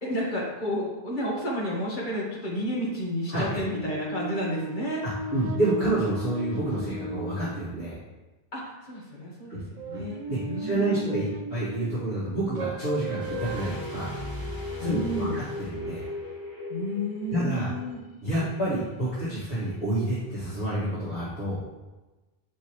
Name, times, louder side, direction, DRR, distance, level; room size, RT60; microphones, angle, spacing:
voice 1, 0.0-5.0 8.5-10.2 10.5-11.2 14.8-15.4 16.7-18.0, equal, 50° left, -4 dB, 1.9 m, -31 dB
sound 1, 3.5-7.6 9.8-12.0 12.6-13.6, right 2 dB, 55° right, 0.7 m, -36 dB
voice 2, 5.0-8.0 9.5-9.6 9.9-10.0 10.3-14.1 14.8-16.0 17.3-17.7 18.2-21.6, right 1 dB, 65° left, -14 dB, 2.6 m, -28 dB
sound 2, 13.2-18.1 18.3-18.4, left 2 dB, 20° left, 2.0 m, -36 dB
7.8 x 5.4 x 3.2 m, 1.1 s
omnidirectional pair, 1.1 m